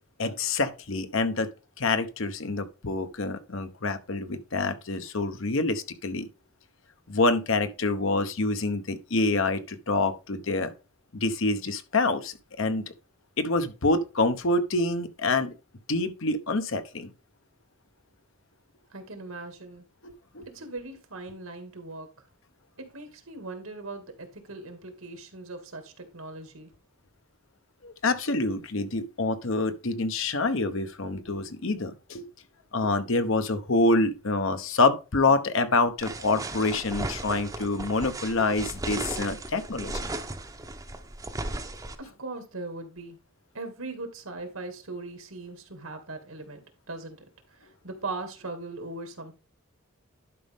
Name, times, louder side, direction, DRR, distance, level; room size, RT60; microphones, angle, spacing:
voice 1, 0.2-1.5 1.8-6.3 7.1-10.7 11.1-12.8 13.4-15.5 15.9-17.1 20.0-20.4 27.8-32.3 32.7-40.1, left 3 dB, 70° left, 1.0 m, -26 dB
voice 2, 18.9-19.8 20.5-22.1 22.8-26.7 42.0-43.2 43.5-46.6 46.9-47.2 47.8-49.3, right 3 dB, 85° right, 2.3 m, -39 dB
sound 1, 36.0-41.9, right 2 dB, 15° right, 0.7 m, -36 dB
11.5 x 5.3 x 3.6 m
head